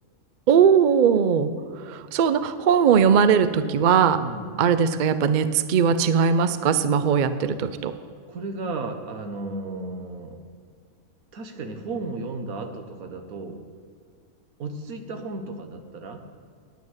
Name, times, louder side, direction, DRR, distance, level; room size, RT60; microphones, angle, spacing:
voice 1, 0.5-1.5 1.8-4.2 4.6-7.9, right 7 dB, 65° right, 12 dB, 0.4 m, -19 dB
voice 2, 4.2-4.5 8.3-10.4 11.3-13.6 14.6-16.2, right 3 dB, 80° right, 6 dB, 1.6 m, -34 dB
9.3 x 9.2 x 7.3 m, 2.2 s
omnidirectional pair, 1.5 m